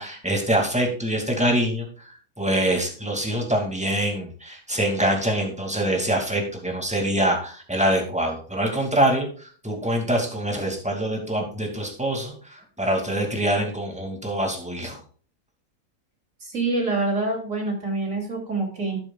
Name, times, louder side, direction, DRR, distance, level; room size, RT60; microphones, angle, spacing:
voice 1, 0.0-15.0, right 1 dB, 5° right, 2 dB, 2.3 m, -25 dB
voice 2, 16.4-19.0, right 3 dB, 55° right, 1 dB, 3.4 m, -26 dB
12.0 x 9.7 x 2.4 m, 0.42 s
omnidirectional pair, 1.6 m